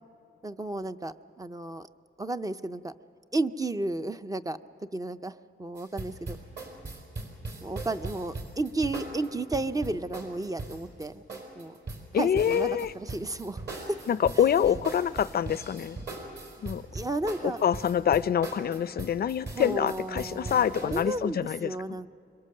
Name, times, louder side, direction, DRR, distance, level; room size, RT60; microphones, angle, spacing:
voice 1, 0.4-1.9 2.2-2.9 3.3-4.6 4.9-6.4 7.6-11.8 12.1-14.0 14.4-14.5 16.9-17.6 19.6-22.1, right 2 dB, 15° right, 10 dB, 0.5 m, -33 dB
sound 1, 5.8-21.0, right 2 dB, 55° right, 4.5 m, -39 dB
voice 2, 12.1-12.9 14.1-16.0 16.6-16.8 17.4-21.7, left 9 dB, 50° left, 17 dB, 0.4 m, -26 dB
26.0 x 22.5 x 6.6 m, 2.7 s
wide cardioid pair, 125°, 21 cm